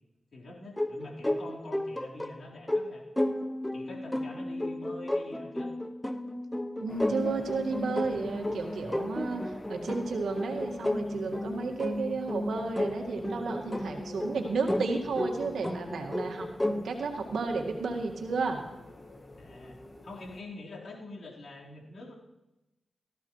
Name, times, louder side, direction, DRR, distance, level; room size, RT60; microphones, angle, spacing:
voice 1, 0.3-3.0 3.7-5.7 19.3-22.1, left 2 dB, 70° left, -4 dB, 4.1 m, -45 dB
sound 1, 0.8-16.8, left 1 dB, 10° left, 0.8 m, -33 dB
voice 2, 6.8-9.4 9.7-18.6, right 4 dB, 90° right, 2 dB, 1.8 m, -32 dB
sound 2, 6.9-20.4, left 2 dB, 35° left, 1.7 m, -46 dB
18.0 x 14.5 x 3.2 m, 0.97 s
cardioid pair, 60°, 0 cm